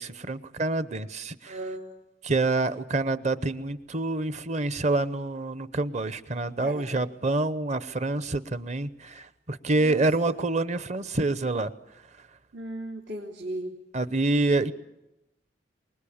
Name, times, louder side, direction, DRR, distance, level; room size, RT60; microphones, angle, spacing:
voice 1, 0.0-1.6 2.2-11.7 13.9-14.7, right 2 dB, 40° right, 14 dB, 0.8 m, -27 dB
voice 2, 1.5-1.9 6.6-7.0 9.7-10.0 12.5-13.7, right 1 dB, 85° right, -1 dB, 2.9 m, -36 dB
24.5 x 21.0 x 8.7 m, 0.93 s
head